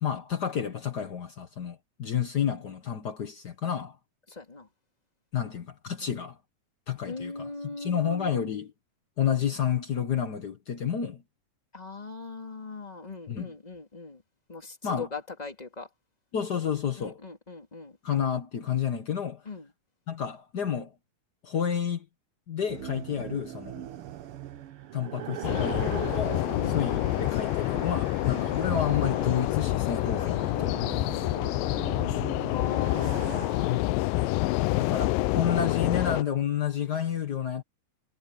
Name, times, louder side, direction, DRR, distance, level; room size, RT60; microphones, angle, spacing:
voice 1, 0.0-4.0 5.3-6.4 6.9-7.5 7.8-8.7 9.2-11.2 13.3-13.5 14.8-15.1 16.3-17.2 18.0-19.5 20.1-20.9 21.4-22.0 22.5-23.8 24.9-31.0 33.7-34.0 34.8-37.6, left 8 dB, 65° left, 1.0 m, -30 dB
voice 2, 4.3-4.7 6.0-6.2 7.1-8.6 11.7-14.2 14.5-15.9 17.0-18.0 19.4-19.7 23.1-23.3 26.6-26.8 28.3-28.5 32.4-33.8, left 4 dB, 15° left, 2.1 m, -40 dB
sound 1, 22.7-33.5, right 11 dB, 80° right, 1.2 m, -40 dB
sound 2, 25.4-36.2, left 18 dB, 85° left, 2.3 m, -27 dB
omnidirectional pair, 3.9 m